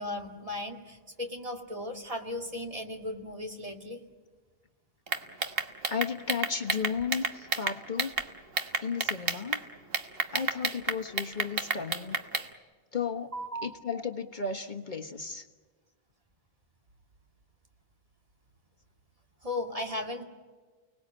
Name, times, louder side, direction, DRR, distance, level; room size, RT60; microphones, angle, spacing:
voice 1, 0.0-4.0 13.1-14.0 19.4-20.2, left 1 dB, 35° right, 3 dB, 2.3 m, -36 dB
sound 1, 5.1-8.3 8.6-9.6 9.9-12.5, right 4 dB, 65° right, 1.6 m, -30 dB
voice 2, 5.9-8.1 8.8-9.6 10.3-12.2 12.9-13.3 13.6-15.4, left 5 dB, 50° left, 4 dB, 1.4 m, -34 dB
29.5 x 19.0 x 8.8 m, 1.4 s
omnidirectional pair, 1.0 m